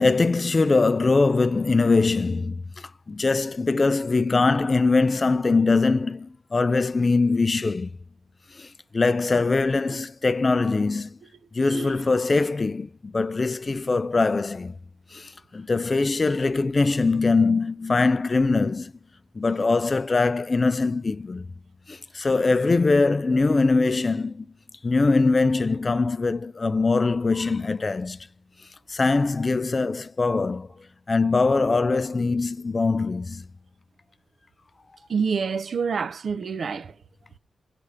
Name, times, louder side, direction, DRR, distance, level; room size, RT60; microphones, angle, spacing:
voice 1, 0.0-7.9 8.5-11.1 11.5-14.8 15.1-18.9 19.4-21.5 21.9-24.5 24.8-28.2 28.9-30.7 31.1-33.4, left 3 dB, 40° left, 0.3 m, -22 dB
voice 2, 35.1-36.9, right 5 dB, 65° right, 0.4 m, -27 dB
9.3 x 3.3 x 4.9 m
cardioid pair, 50°, 0 cm